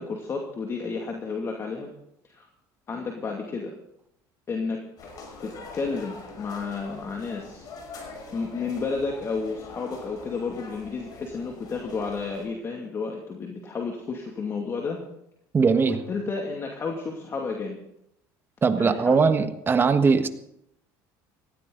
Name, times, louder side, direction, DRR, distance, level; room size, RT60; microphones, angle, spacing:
voice 1, 0.0-1.9 2.2-2.5 2.9-3.7 4.5-4.8 5.4-7.7 8.3-15.0 15.9-17.8 18.8-19.2, left 4 dB, 35° left, 1 dB, 2.5 m, -31 dB
sound 1, 5.0-12.5, left 3 dB, 50° left, 5.9 m, -43 dB
voice 2, 15.5-16.0 18.6-20.3, right 5 dB, 25° right, 9 dB, 1.4 m, -20 dB
18.5 x 15.5 x 4.0 m, 0.78 s
supercardioid pair, 105°, 8 cm